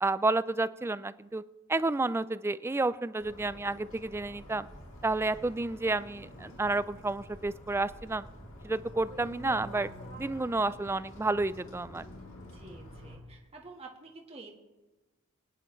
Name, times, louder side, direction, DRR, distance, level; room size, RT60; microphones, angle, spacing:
voice 1, 0.0-1.4 1.7-4.7 5.0-8.3 8.6-9.9 10.2-12.0, right 2 dB, 10° right, 16 dB, 0.3 m, -30 dB
sound 1, 3.2-13.2, equal, 65° left, 3.1 m, -48 dB
voice 2, 12.5-14.5, right 3 dB, 30° right, 0 dB, 1.4 m, -49 dB
24.0 x 10.0 x 3.2 m, 1.1 s
head